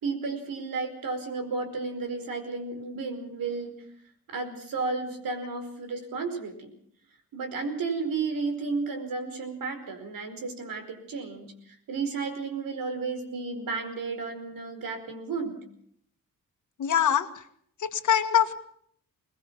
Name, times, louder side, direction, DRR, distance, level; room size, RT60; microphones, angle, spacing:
voice 1, 0.0-3.7 4.3-6.7 7.3-15.6, right 4 dB, 75° right, 7 dB, 5.0 m, -33 dB
voice 2, 16.8-17.3 17.8-18.6, left 9 dB, 60° left, 9 dB, 1.8 m, -23 dB
21.5 x 21.0 x 6.1 m, 0.65 s
cardioid pair, 120°, 34 cm